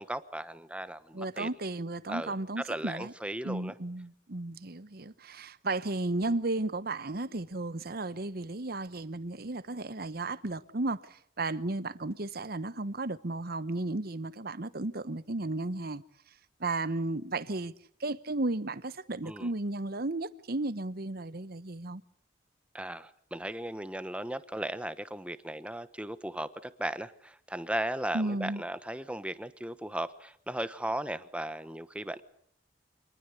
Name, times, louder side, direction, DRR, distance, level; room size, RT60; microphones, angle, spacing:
voice 1, 0.0-1.5 2.1-2.3 2.7-3.7 19.2-19.5 22.7-32.2, right 1 dB, 5° right, 1.1 m, -36 dB
voice 2, 1.1-3.1 3.4-16.0 16.6-17.7 18.0-22.0 28.1-28.6, right 2 dB, 55° right, 1.1 m, -34 dB
26.5 x 20.0 x 8.3 m
head